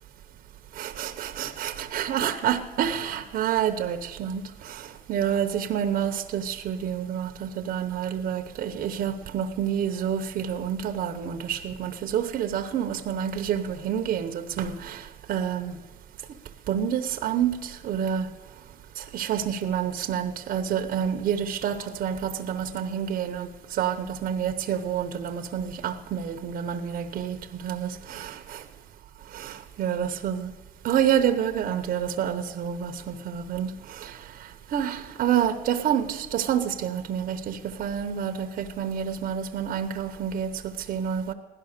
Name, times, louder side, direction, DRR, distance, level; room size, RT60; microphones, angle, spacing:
voice 1, 0.7-15.7 16.7-18.3 19.0-28.6 29.3-30.5 30.8-34.2 34.7-41.3, right 9 dB, 60° right, 0.9 m, -28 dB
16.0 x 11.5 x 6.6 m
cardioid pair, 110°, 17 cm